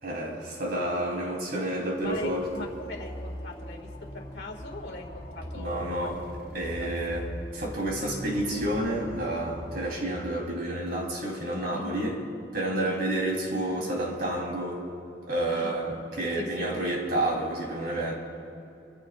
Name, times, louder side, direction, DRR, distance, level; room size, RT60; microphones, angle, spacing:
voice 1, 0.0-2.5 5.5-6.2 6.5-7.3 7.5-12.2 12.5-14.8 15.3-18.1, right 1 dB, 60° right, -2 dB, 3.6 m, -30 dB
voice 2, 2.0-3.9 4.1-6.1 6.8-7.2 11.7-12.1 12.7-13.0 15.5-15.7 16.3-16.5 16.8-17.0, left 2 dB, 70° left, 1 dB, 2.2 m, -40 dB
sound 1, 2.0-10.0, equal, 50° left, 4.3 m, -41 dB
27.0 x 15.5 x 2.5 m, 2.8 s
head